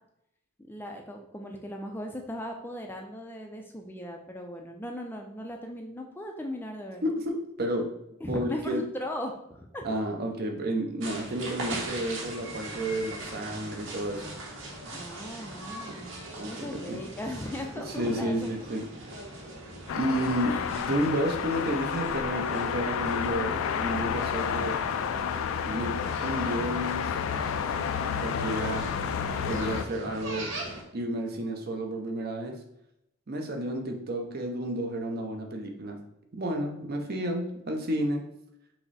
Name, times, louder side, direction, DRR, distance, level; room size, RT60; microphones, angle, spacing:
voice 1, 0.7-7.0 8.2-9.8 14.9-18.5 20.5-20.6, left 1 dB, 10° left, 3 dB, 0.4 m, -38 dB
voice 2, 7.0-8.0 8.3-8.8 9.8-14.3 16.0-16.1 16.4-17.0 17.9-18.8 19.9-24.8 25.7-27.2 28.2-28.9 29.5-30.5 30.9-32.6 33.3-36.0 36.3-38.2, right 1 dB, 50° right, 3 dB, 0.7 m, -31 dB
sound 1, 11.0-30.8, right 1 dB, 70° right, 1.1 m, -40 dB
sound 2, 19.9-29.9, left 7 dB, 85° left, 0.3 m, -30 dB
5.8 x 2.0 x 4.1 m, 0.80 s
head